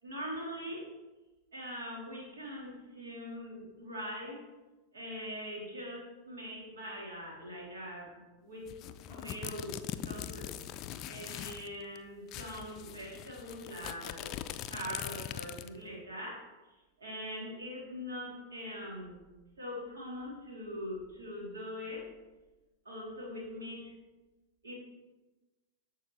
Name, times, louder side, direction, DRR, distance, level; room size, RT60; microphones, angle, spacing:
voice 1, 0.0-0.9 1.5-4.4 4.9-8.7 9.1-10.5 11.1-14.4 14.7-16.5 17.0-19.2 19.6-22.1 22.8-23.9 24.6-24.7, equal, 70° right, -3 dB, 2.8 m, -42 dB
sound 1, 8.7-11.7 12.0-12.1 12.3-15.8, left 11 dB, 35° left, 0.4 m, -42 dB
13.5 x 4.7 x 3.1 m, 1.1 s
figure-of-eight pair, 90°, 0 cm